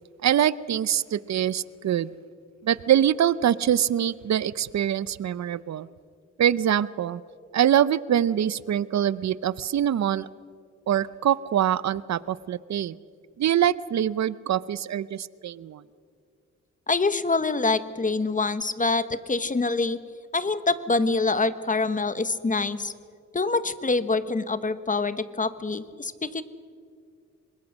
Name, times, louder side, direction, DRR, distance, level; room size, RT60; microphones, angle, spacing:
voice 1, 0.2-2.1 2.6-5.9 6.4-7.2 7.5-10.3 10.9-12.9 13.4-15.8, right 10 dB, 60° right, 18 dB, 0.7 m, -24 dB
voice 2, 16.9-20.0 20.3-22.9 23.3-26.4, left 3 dB, 25° left, 13 dB, 1.2 m, -25 dB
25.5 x 21.0 x 6.4 m, 2.2 s
cardioid pair, 80°, 30 cm